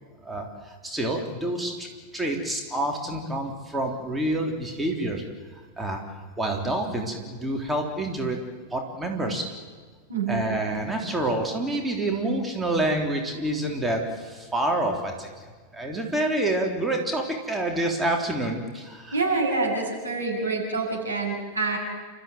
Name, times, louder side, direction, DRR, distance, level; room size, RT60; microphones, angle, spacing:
voice 1, 0.2-1.9 2.1-5.2 5.5-6.0 6.4-8.4 8.7-9.5 10.3-15.3 15.7-19.2, right 1 dB, 10° right, 1 dB, 3.5 m, -27 dB
voice 2, 10.1-10.5 19.1-21.8, right 3 dB, 80° right, -1 dB, 7.6 m, -26 dB
29.0 x 14.0 x 9.4 m, 1.5 s
figure-of-eight pair, 90°, 0 cm